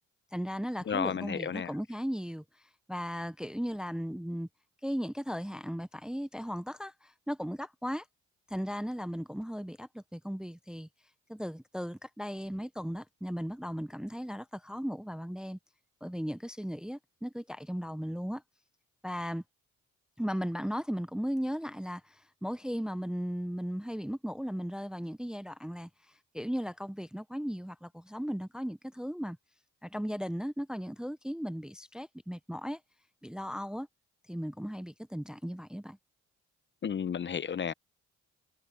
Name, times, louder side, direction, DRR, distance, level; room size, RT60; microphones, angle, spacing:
voice 1, 0.3-2.4 2.9-4.5 4.8-8.0 8.5-10.9 11.3-15.6 16.0-18.4 19.0-19.4 20.2-25.9 26.3-29.4 29.8-32.8 33.2-33.9 34.3-36.0, equal, ahead, 0.7 m, -36 dB
voice 2, 0.9-1.7 36.8-37.7, left 7 dB, 40° left, 0.8 m, -32 dB
cardioid pair, 90°, 30 cm